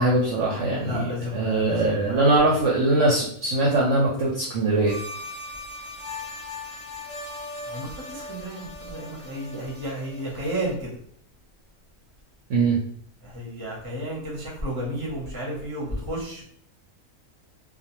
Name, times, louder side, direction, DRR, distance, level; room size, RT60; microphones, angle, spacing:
voice 1, 0.0-5.0 12.5-12.8, right 2 dB, 65° right, -4 dB, 0.7 m, -22 dB
voice 2, 0.7-2.6 7.6-10.9 13.2-16.4, right 1 dB, 25° right, -4 dB, 0.6 m, -32 dB
sound 1, 4.9-10.7, left 2 dB, 65° left, 0.8 m, -39 dB
2.4 x 2.2 x 2.9 m, 0.63 s
omnidirectional pair, 1.6 m